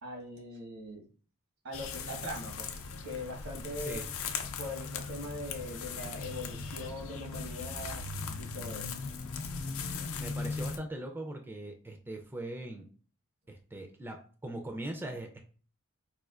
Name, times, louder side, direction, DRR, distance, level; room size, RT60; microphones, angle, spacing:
voice 1, 0.0-1.1 1.6-2.8 3.0-4.0 4.6-8.0 8.4-8.9, left 1 dB, 85° right, 1 dB, 1.2 m, -41 dB
sound 1, 1.7-10.8, left 4 dB, 65° left, 0.5 m, -38 dB
voice 2, 3.8-4.1 10.1-12.9 13.5-15.4, right 1 dB, 10° right, 3 dB, 0.3 m, -40 dB
4.3 x 2.5 x 2.4 m, 0.41 s
head